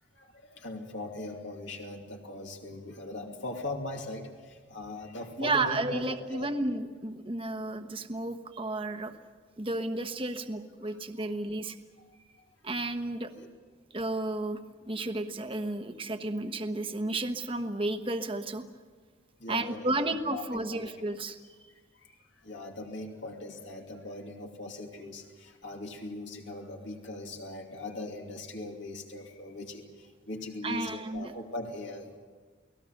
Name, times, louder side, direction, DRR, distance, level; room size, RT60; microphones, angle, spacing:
voice 1, 0.1-6.5 10.8-11.3 12.1-12.4 13.4-13.5 15.0-15.1 19.4-20.9 21.9-32.1, left 2 dB, 65° left, 1 dB, 2.7 m, -40 dB
voice 2, 5.4-9.1 9.6-11.8 12.6-13.3 13.9-14.6 14.9-18.6 19.5-21.4 30.6-31.3, right 2 dB, 25° right, 7 dB, 1.1 m, -32 dB
29.5 x 19.0 x 6.6 m, 1.5 s
head